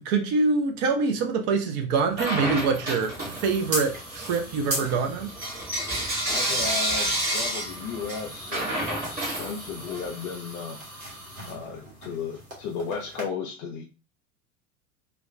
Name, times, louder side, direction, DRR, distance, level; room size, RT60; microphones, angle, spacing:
voice 1, 0.0-5.3, right 4 dB, 40° right, 0.6 m, -25 dB
Bell / Coin (dropping), 2.1-3.7 4.1-10.1, right 1 dB, 20° right, 1.2 m, -30 dB
sound 1, 2.3-13.2, right 1 dB, 85° right, 1.1 m, -39 dB
voice 2, 6.3-10.8 11.5-13.8, left 5 dB, 35° left, 0.4 m, -35 dB
2.4 x 2.2 x 3.2 m
figure-of-eight pair, 80°, 41 cm